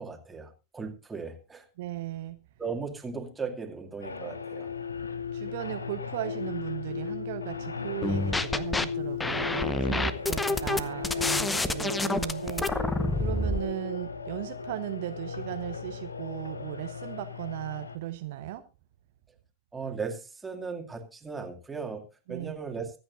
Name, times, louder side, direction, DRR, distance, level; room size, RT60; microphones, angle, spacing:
voice 1, 0.0-1.7 2.6-4.7 19.7-23.0, right 5 dB, 10° right, 3 dB, 2.4 m, -37 dB
voice 2, 1.8-2.4 5.3-18.6 22.3-22.5, right 14 dB, 55° right, 9 dB, 0.9 m, -37 dB
sound 1, 4.0-18.0, left 6 dB, 75° left, 1.0 m, -36 dB
sound 2, 8.0-8.8 9.2-13.6, left 2 dB, 10° left, 0.9 m, -28 dB
24.5 x 8.7 x 2.6 m, 0.30 s
figure-of-eight pair, 90°, 0 cm